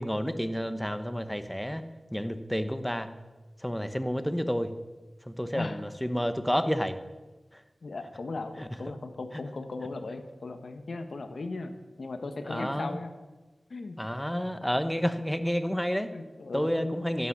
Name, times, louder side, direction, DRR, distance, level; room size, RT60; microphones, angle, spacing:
voice 1, 0.0-1.8 2.1-3.1 3.6-4.7 5.3-7.0 12.4-13.0 14.0-16.1 16.5-17.3, equal, 5° left, 10 dB, 1.0 m, -30 dB
voice 2, 5.5-5.8 7.8-11.7 12.0-13.1 13.7-14.0 16.0-17.1, left 3 dB, 70° left, 7 dB, 1.4 m, -37 dB
13.0 x 11.5 x 7.3 m, 1.2 s
wide cardioid pair, 85°, 0 cm